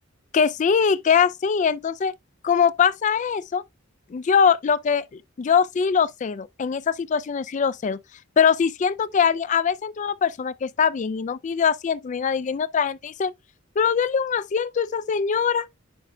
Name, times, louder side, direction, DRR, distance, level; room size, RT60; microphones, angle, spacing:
voice 1, 0.3-2.1 2.4-3.6 4.1-8.0 8.4-13.3 13.8-15.7, left 6 dB, 40° left, 0.3 m, -22 dB
9.7 x 5.2 x 2.2 m
head